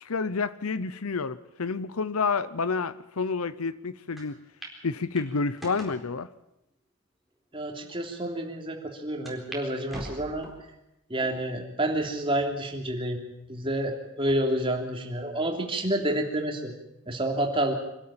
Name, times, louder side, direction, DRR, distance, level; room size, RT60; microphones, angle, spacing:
voice 1, 0.0-4.3 4.8-6.3, left 4 dB, 85° left, 0.8 m, -29 dB
sound 1, 4.2-4.3 4.6-4.8 5.2-6.0 6.7-6.8 7.5-7.6 7.9-8.0 9.3-9.6 9.9-10.7 11.2-11.7 12.2-12.3 13.4-13.9, right 1 dB, ahead, 4.1 m, -42 dB
voice 2, 7.5-10.5 11.1-13.2 13.5-16.7 17.1-17.7, right 1 dB, 25° right, 3.1 m, -29 dB
25.0 x 13.0 x 8.8 m
head